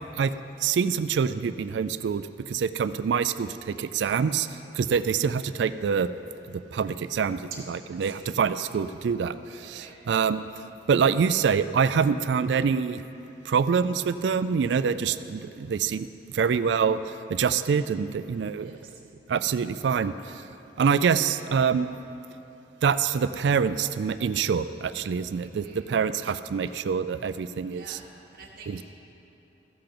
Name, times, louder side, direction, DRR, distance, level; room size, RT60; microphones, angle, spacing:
voice 1, 0.6-4.5 4.8-6.1 6.5-7.4 7.7-10.4 10.9-13.0 13.5-16.1 16.3-18.7 19.3-20.1 20.8-21.9 22.8-28.0 28.7-28.8, right 6 dB, 80° right, 13 dB, 0.3 m, -25 dB
voice 2, 7.9-8.3 9.7-9.9 18.6-18.9 25.4-25.9 27.7-28.1 28.3-28.8, right 3 dB, 50° right, -4 dB, 1.6 m, -49 dB
14.0 x 5.9 x 6.7 m, 2.9 s
head